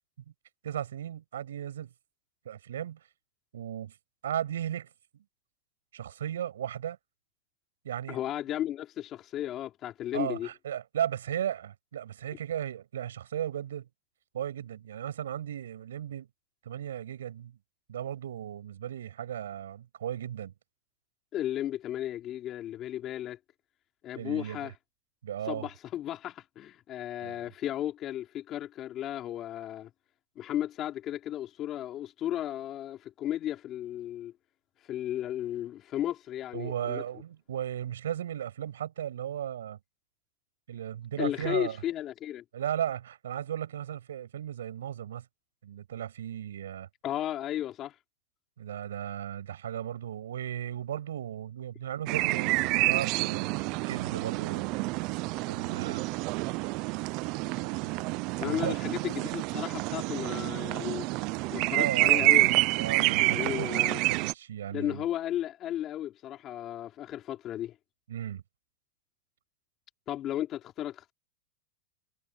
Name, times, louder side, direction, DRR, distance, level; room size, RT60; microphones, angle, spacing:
voice 1, 0.6-1.9 2.4-3.0 3.5-3.9 4.2-5.2 5.9-7.0 7.8-8.2 10.1-13.9 14.3-16.3 16.6-17.6 17.9-20.5 24.1-24.7 25.2-25.7 27.2-27.4 36.5-39.8 40.7-41.8 42.5-45.3 45.6-46.9 48.6-54.7 55.4-56.1 57.5-57.9 58.5-58.8 61.8-63.8 64.1-65.0 68.1-68.4, right 10 dB, 90° right, 8.0 m, -36 dB
voice 2, 8.1-10.5 21.3-23.4 24.0-24.7 25.5-29.9 30.3-34.3 34.9-37.0 41.2-42.4 47.0-47.9 58.4-61.1 61.5-62.5 63.0-64.0 64.7-67.7 70.1-71.1, left 12 dB, 35° left, 3.4 m, -34 dB
sound 1, 52.1-64.3, right 23 dB, 45° right, 0.7 m, -28 dB
supercardioid pair, 130°, 0 cm